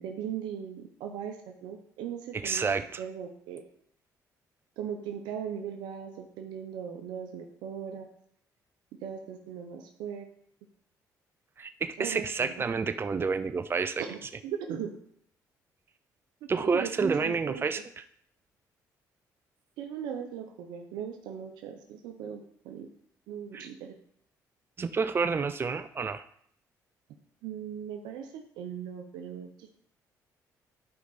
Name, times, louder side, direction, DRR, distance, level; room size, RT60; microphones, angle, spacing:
voice 1, 0.0-3.6 4.8-8.1 9.0-10.3 12.0-12.5 14.1-14.9 16.6-17.6 19.8-22.9 23.3-23.9 27.4-29.7, right 8 dB, 85° right, 4 dB, 1.0 m, -38 dB
voice 2, 2.3-3.0 11.6-14.0 16.5-18.0 23.5-23.7 24.8-26.3, right 5 dB, 30° right, 10 dB, 0.5 m, -29 dB
11.5 x 4.9 x 4.2 m, 0.66 s
supercardioid pair, 75°, 7 cm